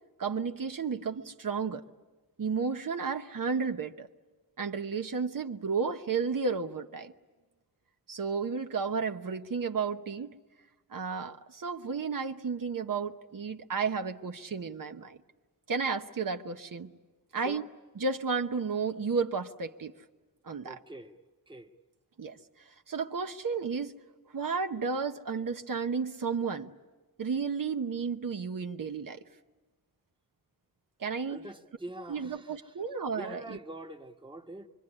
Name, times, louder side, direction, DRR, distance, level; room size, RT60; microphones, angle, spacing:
voice 1, 0.2-1.8 2.4-4.1 4.6-7.1 8.1-10.3 10.9-15.2 15.7-16.9 17.3-17.7 18.0-19.9 20.4-20.8 22.2-22.4 22.6-23.9 24.3-26.7 27.2-29.2 31.0-31.4 32.1-33.6, right 5 dB, 65° right, 0.9 m, -32 dB
voice 2, 20.6-21.2 21.5-21.7 31.3-32.6 33.1-34.7, right 1 dB, 15° right, 1.2 m, -44 dB
24.5 x 24.0 x 9.9 m
wide cardioid pair, 95°, 36 cm